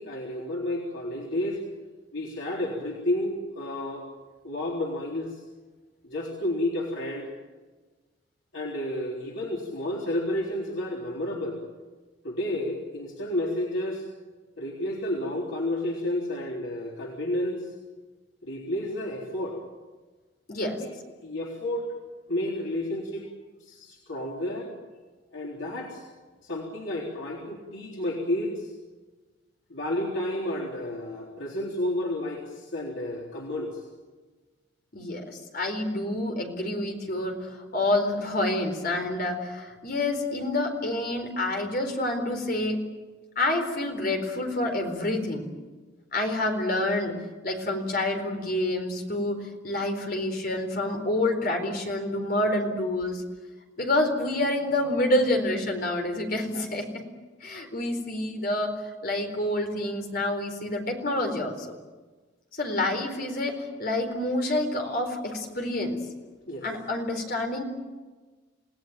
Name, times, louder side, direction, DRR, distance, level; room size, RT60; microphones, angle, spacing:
voice 1, 0.0-1.6 2.1-4.1 4.4-5.4 6.0-7.3 8.5-11.6 12.2-14.1 14.6-17.7 18.4-19.6 20.6-20.9 21.2-21.9 22.3-23.3 23.6-24.7 25.3-26.0 26.4-28.7 29.7-33.8 66.5-66.7, left 1 dB, 85° left, -2 dB, 3.8 m, -31 dB
voice 2, 34.9-42.8 43.4-45.5 46.1-47.2 47.4-53.2 53.8-57.0 57.4-61.7 62.5-66.0 66.6-67.6, left 1 dB, 50° left, 4 dB, 4.2 m, -28 dB
28.5 x 18.0 x 9.1 m, 1.3 s
head